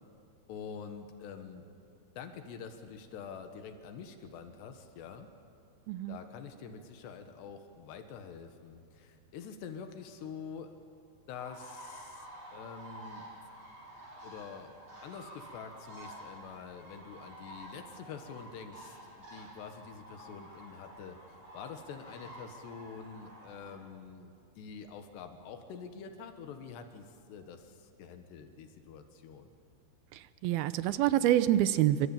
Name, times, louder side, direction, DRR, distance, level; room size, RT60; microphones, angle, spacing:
voice 1, 0.5-1.7 2.2-5.3 6.1-10.7 11.3-13.3 14.2-14.8 15.0-29.5, left 6 dB, 90° left, 6 dB, 3.6 m, -46 dB
voice 2, 5.9-6.2 30.4-32.1, right 13 dB, 75° right, 13 dB, 2.5 m, -26 dB
sound 1, 11.3-23.8, right 1 dB, 30° right, 8.5 m, -50 dB
26.5 x 24.5 x 9.0 m, 2.5 s
omnidirectional pair, 4.7 m